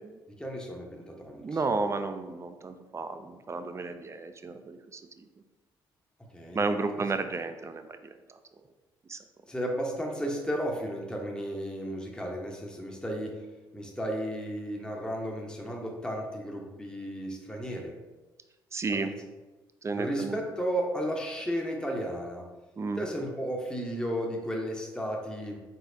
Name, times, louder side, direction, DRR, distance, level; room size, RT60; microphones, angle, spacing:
voice 1, 0.3-1.6 6.3-6.6 6.9-7.1 9.5-13.4 13.7-17.9 18.9-19.1 19.9-22.5 23.0-25.6, equal, 5° left, 0 dB, 1.0 m, -34 dB
voice 2, 1.4-5.2 6.5-8.4 9.1-9.2 18.7-19.1 19.8-20.4 22.8-23.0, right 3 dB, 25° right, 8 dB, 0.5 m, -32 dB
4.6 x 4.1 x 2.7 m, 1.2 s
hypercardioid pair, 45°, 11 cm